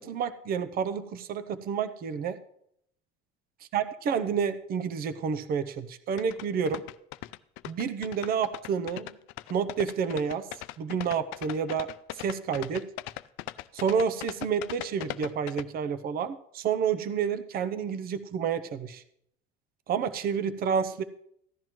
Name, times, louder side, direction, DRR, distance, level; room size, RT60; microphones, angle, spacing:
voice 1, 0.0-2.4 3.7-6.8 7.6-9.2 9.5-10.5 10.8-11.9 12.1-12.9 13.7-19.0 19.9-21.0, right 6 dB, 45° right, 11 dB, 0.7 m, -29 dB
sound 1, 6.2-15.6, left 18 dB, 75° left, 0.4 m, -39 dB
15.0 x 10.5 x 3.1 m, 0.73 s
cardioid pair, 115°, 21 cm